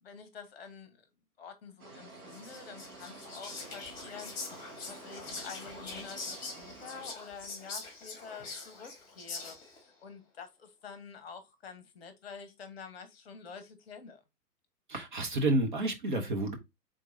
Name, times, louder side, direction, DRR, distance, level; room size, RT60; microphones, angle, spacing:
voice 1, 0.0-1.0 1.4-14.2, left 6 dB, 40° left, 0.9 m, -48 dB
sound 1, 1.8-7.1, right 3 dB, 65° right, 1.5 m, -50 dB
Whispering, 2.3-9.8, left 3 dB, 20° left, 1.3 m, -44 dB
voice 2, 14.9-16.6, right 2 dB, 35° right, 0.6 m, -30 dB
4.4 x 3.7 x 2.6 m
figure-of-eight pair, 120°, 47 cm